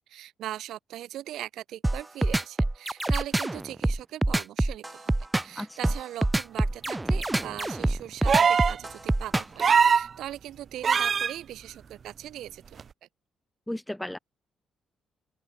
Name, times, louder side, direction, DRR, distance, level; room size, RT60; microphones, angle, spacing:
voice 1, 0.0-5.1 5.4-13.1, right 13 dB, 80° right, 3.0 m, -40 dB
sound 1, 1.8-9.6, right 2 dB, 10° right, 2.6 m, -25 dB
sound 2, 8.3-8.8 9.6-10.1 10.8-11.3 12.8-12.9, right 6 dB, 45° right, 0.6 m, -21 dB
voice 2, 13.7-14.2, left 1 dB, 5° left, 2.5 m, -34 dB
open air
cardioid pair, 90°, 0 cm